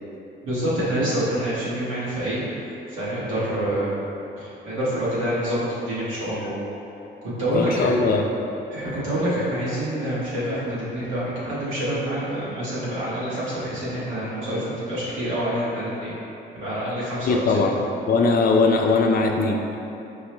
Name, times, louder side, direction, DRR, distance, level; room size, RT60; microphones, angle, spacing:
voice 1, 0.4-4.0 4.4-6.6 7.2-7.9 8.7-16.1 16.5-17.4, right 1 dB, 85° right, -9 dB, 1.3 m, -27 dB
voice 2, 7.5-8.3 17.2-17.8 18.1-19.6, left 3 dB, 50° left, 2 dB, 0.4 m, -20 dB
4.6 x 2.1 x 3.1 m, 2.8 s
cardioid pair, 90°, 20 cm